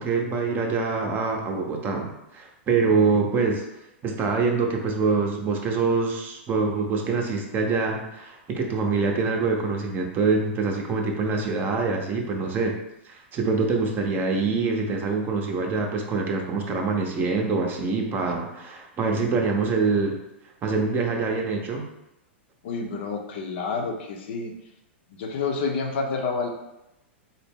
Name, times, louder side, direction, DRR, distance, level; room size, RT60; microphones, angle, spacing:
voice 1, 0.0-3.6 4.0-12.8 13.0-20.2 20.6-21.8, right 4 dB, 30° right, 2 dB, 0.6 m, -25 dB
voice 2, 22.6-24.5 25.1-26.5, left 4 dB, 60° left, 3 dB, 0.6 m, -29 dB
4.0 x 2.0 x 3.5 m, 0.91 s
hypercardioid pair, 105°, 7 cm